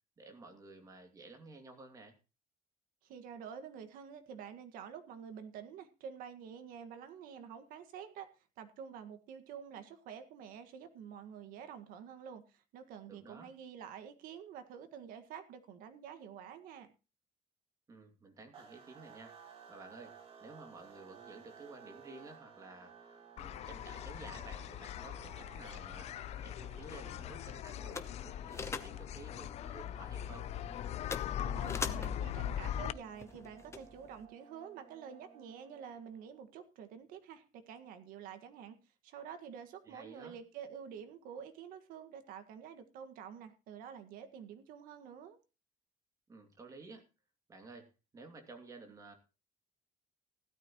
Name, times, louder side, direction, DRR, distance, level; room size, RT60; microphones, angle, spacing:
voice 1, 0.2-2.1 13.1-13.5 17.9-19.4 19.7-20.1 20.4-22.9 23.3-26.1 26.4-30.5 39.9-40.4 46.3-47.1 47.5-47.9 48.1-49.1, right 3 dB, 25° right, 2.6 m, -53 dB
voice 2, 3.0-8.3 8.6-16.9 31.4-38.8 39.0-45.4, right 8 dB, 85° right, 1.8 m, -48 dB
sound 1, 18.5-36.4, right 6 dB, 40° right, 2.9 m, -58 dB
sound 2, 23.4-32.9, left 10 dB, 50° left, 0.5 m, -41 dB
sound 3, 26.2-34.3, left 4 dB, 20° left, 1.0 m, -46 dB
16.0 x 12.5 x 3.1 m
cardioid pair, 165°, 14 cm